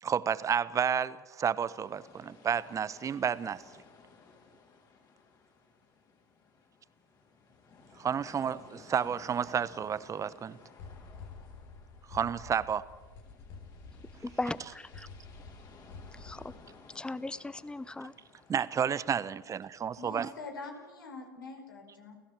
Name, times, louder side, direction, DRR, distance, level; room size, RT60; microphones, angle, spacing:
voice 1, 0.0-3.6 8.0-10.6 12.1-12.9 18.5-20.3, right 7 dB, 30° right, 1.0 m, -31 dB
sound 1, 1.7-20.1, left 4 dB, 35° left, 5.4 m, -58 dB
sound 2, 9.1-9.4 9.8-9.9 10.3-10.4 10.8-16.6, left 4 dB, 60° left, 4.6 m, -49 dB
voice 2, 14.2-15.1 16.2-16.5 16.9-18.1, left 2 dB, 10° left, 0.9 m, -37 dB
voice 3, 20.0-22.1, left 3 dB, 80° left, 5.0 m, -44 dB
29.5 x 16.0 x 7.4 m
hypercardioid pair, 75°, 11 cm